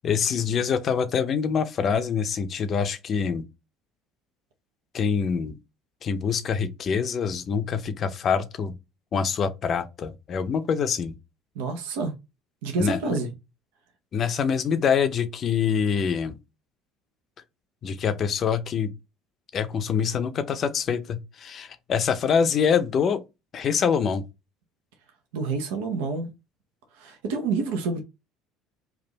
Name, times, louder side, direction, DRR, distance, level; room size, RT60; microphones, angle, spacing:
voice 1, 0.0-3.4 4.9-5.6 6.0-8.8 9.1-11.2 12.8-13.0 14.1-16.4 17.8-18.9 19.5-23.2 23.5-24.2, left 6 dB, 45° left, 0.5 m, -25 dB
voice 2, 11.6-12.1 12.6-13.3 25.3-26.3 27.0-28.0, right 4 dB, 80° right, 0.6 m, -28 dB
3.4 x 2.4 x 3.9 m
hypercardioid pair, 75°, 0 cm